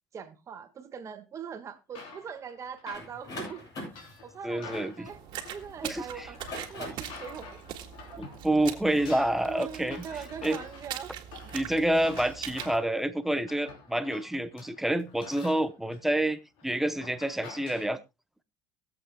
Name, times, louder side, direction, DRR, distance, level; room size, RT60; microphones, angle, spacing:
voice 1, 0.1-3.6 3.9-5.2 5.5-7.6 8.3-8.4 9.4-11.1, right 7 dB, 30° right, 1.6 m, -41 dB
sound 1, 1.9-8.5 8.7-17.9, left 4 dB, 65° left, 3.7 m, -48 dB
sound 2, 2.9-5.7 6.3-7.2, left 1 dB, 40° left, 7.9 m, -41 dB
voice 2, 4.4-5.1 5.8-6.3 8.2-10.0 10.4-10.6 11.5-18.0, right 1 dB, 5° right, 0.7 m, -28 dB
sound 3, 5.1-12.8, right 10 dB, 55° right, 1.9 m, -42 dB
23.0 x 7.9 x 2.2 m
cardioid pair, 130°, 10 cm